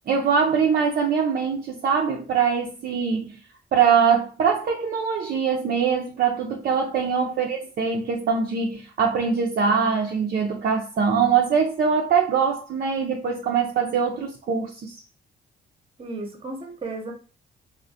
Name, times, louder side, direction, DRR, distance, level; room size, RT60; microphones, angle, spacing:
voice 1, 0.1-3.3 3.7-14.9, right 6 dB, 50° right, 0.5 m, -23 dB
voice 2, 16.0-17.1, right 2 dB, 30° right, 0.8 m, -34 dB
2.3 x 2.1 x 2.6 m
cardioid pair, 90°, 20 cm